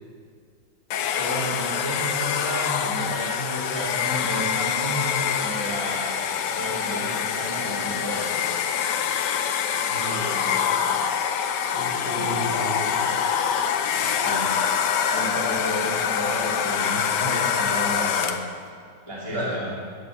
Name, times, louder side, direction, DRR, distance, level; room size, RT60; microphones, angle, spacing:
Domestic sounds home sounds, 0.9-18.6, left 8 dB, 75° left, 1.3 m, -25 dB
voice 1, 1.1-8.6 12.0-12.4 14.1-14.5 15.1-18.4 19.0-19.7, equal, 15° right, -6 dB, 2.7 m, -32 dB
voice 2, 9.8-11.1 11.6-13.0 19.3-19.6, right 1 dB, 65° right, -5 dB, 4.4 m, -33 dB
16.5 x 6.7 x 7.1 m, 2.1 s
omnidirectional pair, 2.0 m